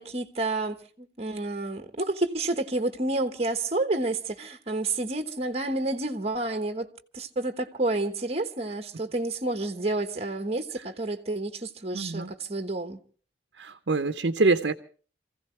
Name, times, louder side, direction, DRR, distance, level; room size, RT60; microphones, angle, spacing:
voice 1, 0.0-6.9 7.1-13.0, right 2 dB, 35° right, 1.2 m, -29 dB
voice 2, 11.9-12.3 13.6-14.7, right 3 dB, 80° right, 0.8 m, -25 dB
28.0 x 15.5 x 3.2 m
head